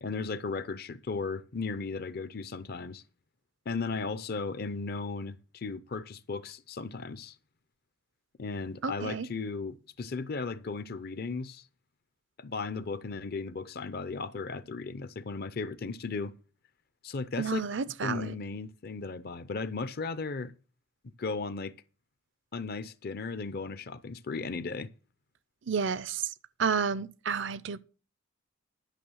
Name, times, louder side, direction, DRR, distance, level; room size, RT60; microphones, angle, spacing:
voice 1, 0.0-3.0 3.7-7.3 8.4-11.6 12.4-16.3 17.0-17.7 18.0-20.5 21.2-21.7 22.5-24.9, left 4 dB, 45° left, 0.6 m, -36 dB
voice 2, 8.8-9.3 17.4-18.3 25.7-26.3 26.6-27.8, right 6 dB, 60° right, 0.5 m, -30 dB
11.5 x 6.3 x 6.3 m
head